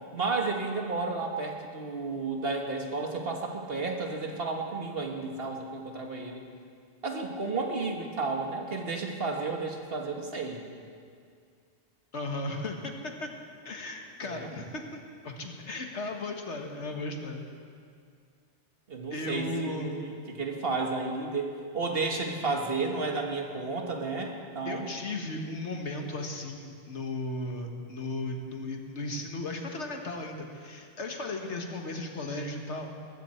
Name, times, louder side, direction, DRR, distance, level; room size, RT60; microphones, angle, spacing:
voice 1, 0.1-6.5 7.0-10.6 14.2-14.5 18.9-24.9, right 3 dB, 55° right, 1 dB, 1.8 m, -32 dB
voice 2, 12.1-13.3 13.7-17.4 19.1-20.0 24.7-32.9, left 2 dB, 80° left, 3 dB, 1.8 m, -36 dB
21.0 x 14.5 x 4.4 m, 2.2 s
omnidirectional pair, 1.2 m